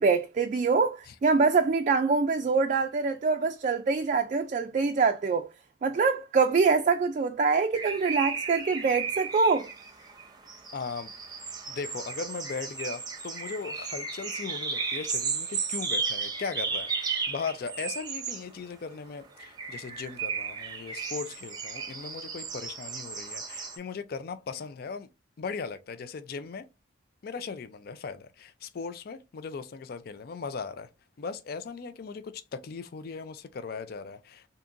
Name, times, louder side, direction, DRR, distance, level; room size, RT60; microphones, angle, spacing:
voice 1, 0.0-5.5 5.8-9.7, right 4 dB, 40° right, 0.3 m, -24 dB
sound 1, 7.7-18.4 19.4-23.8, right 5 dB, 20° right, 0.7 m, -34 dB
voice 2, 10.7-11.1 11.7-25.1 25.4-26.7 27.2-30.9 31.2-34.5, left 5 dB, 55° left, 0.4 m, -38 dB
3.6 x 2.8 x 2.6 m
head